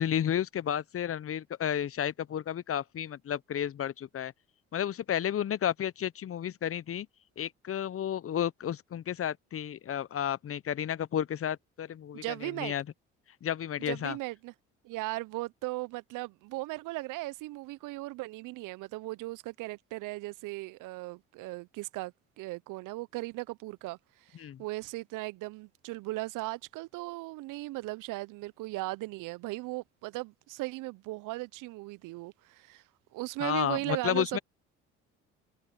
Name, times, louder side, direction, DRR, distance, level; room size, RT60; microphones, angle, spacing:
voice 1, 0.0-4.3 4.7-7.1 7.4-12.8 13.4-14.2 24.4-24.6 33.4-34.4, left 9 dB, 40° left, 1.0 m, -32 dB
voice 2, 12.1-12.7 13.8-14.5 14.8-32.8 33.1-34.4, right 20 dB, 65° right, 1.2 m, -37 dB
hypercardioid pair, 55°, 34 cm